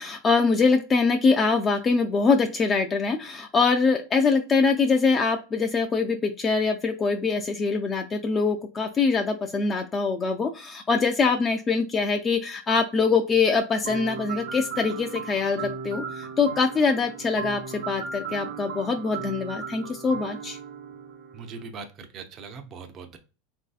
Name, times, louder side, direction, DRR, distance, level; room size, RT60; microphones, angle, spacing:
voice 1, 0.0-20.6, left 4 dB, 25° left, 4 dB, 0.3 m, -23 dB
sound 1, 13.8-21.7, right 5 dB, 80° right, 0.7 m, -36 dB
voice 2, 21.3-23.2, right 5 dB, 40° right, 6 dB, 0.5 m, -40 dB
3.1 x 2.6 x 2.3 m, 0.32 s
supercardioid pair, 120°, 0 cm